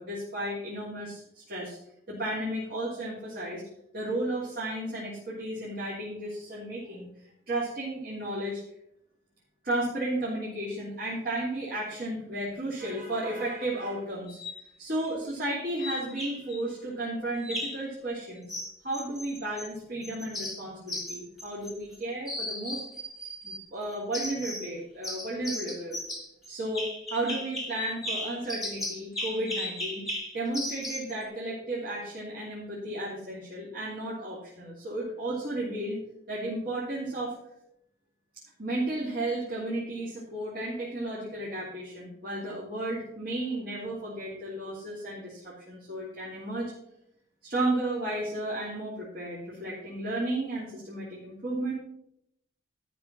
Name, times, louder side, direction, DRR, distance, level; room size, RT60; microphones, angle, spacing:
voice 1, 0.0-1.8 2.1-3.6 3.9-7.1 7.5-8.6 9.6-14.4 14.8-18.5 18.8-22.8 23.4-26.0 26.5-26.8 27.1-30.0 30.3-36.0 36.3-37.4 38.6-46.7 47.4-51.7, right 1 dB, 55° right, -7 dB, 3.1 m, -33 dB
sound 1, 14.3-14.6 15.8-16.6 17.4-17.9 18.5-19.7 20.0-22.0 22.3-23.6 24.1-24.7 25.0-31.1, left 1 dB, ahead, 1.5 m, -36 dB
13.0 x 5.9 x 6.1 m, 0.76 s
head